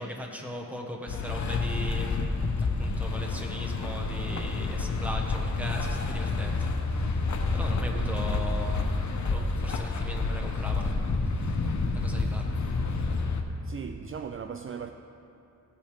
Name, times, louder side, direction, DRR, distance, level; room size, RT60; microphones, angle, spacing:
voice 1, 0.0-7.3 7.5-9.0 9.3-11.0 11.4-11.6 11.9-12.7, left 1 dB, 5° right, 1.4 m, -38 dB
sound 1, 1.1-13.4, left 3 dB, 70° left, 1.0 m, -29 dB
voice 2, 13.6-14.9, right 6 dB, 45° right, 0.5 m, -38 dB
17.0 x 8.7 x 3.5 m
cardioid pair, 80°, 30 cm